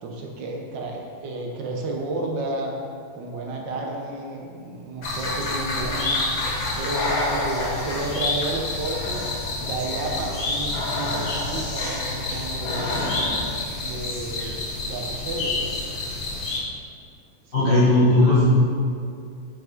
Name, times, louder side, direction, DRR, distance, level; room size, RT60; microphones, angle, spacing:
voice 1, 0.0-2.8 3.2-6.3 6.6-9.3 9.6-13.1 13.8-15.8 17.6-18.1, right 2 dB, 65° right, 0 dB, 1.4 m, -31 dB
sound 1, 5.0-16.6, left 2 dB, 85° left, 2.2 m, -29 dB
Breathing, 5.8-13.7, left 2 dB, 55° left, 1.1 m, -31 dB
voice 2, 17.5-18.4, left 2 dB, 35° left, -9 dB, 1.1 m, -17 dB
5.9 x 5.6 x 5.2 m, 2.3 s
omnidirectional pair, 2.4 m